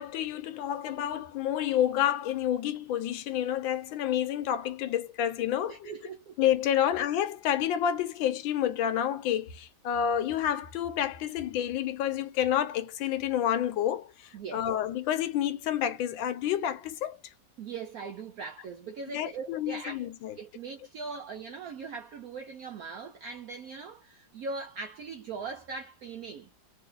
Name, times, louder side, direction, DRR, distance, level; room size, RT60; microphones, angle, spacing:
voice 1, 0.0-5.9 6.4-17.2 19.1-20.4, left 10 dB, 80° left, 1.4 m, -29 dB
voice 2, 5.6-6.3 6.8-6.9 14.3-14.7 17.6-20.1 20.4-26.5, right 4 dB, 75° right, 0.8 m, -40 dB
3.1 x 2.6 x 3.8 m
omnidirectional pair, 2.1 m